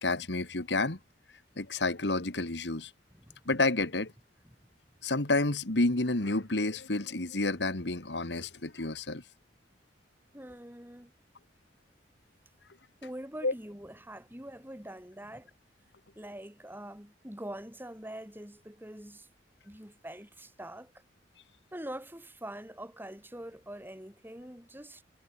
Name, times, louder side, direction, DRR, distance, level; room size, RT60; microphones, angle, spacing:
voice 1, 0.0-1.0 1.6-2.9 3.5-4.1 5.0-9.2 13.4-13.5, left 2 dB, 70° left, 2.1 m, -29 dB
voice 2, 10.3-11.1 13.0-15.5 16.2-19.3 19.6-20.9 21.7-25.0, right 1 dB, 10° right, 7.3 m, -44 dB
head